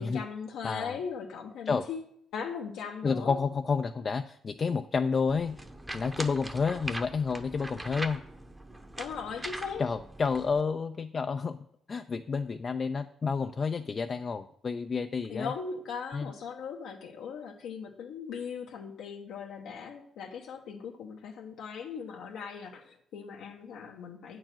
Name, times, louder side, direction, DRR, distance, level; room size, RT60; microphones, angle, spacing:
voice 1, 0.0-3.4 9.0-9.8 15.3-24.4, left 6 dB, 80° left, 1 dB, 0.9 m, -39 dB
voice 2, 0.6-1.0 1.7-1.9 3.0-5.6 5.9-8.2 9.8-11.6 11.9-15.5 16.1-16.3, left 5 dB, 40° left, 7 dB, 0.4 m, -30 dB
sound 1, 5.3-10.6, right 1 dB, 10° right, 0.9 m, -41 dB
8.7 x 4.7 x 7.5 m, 0.70 s
cardioid pair, 90°, 0 cm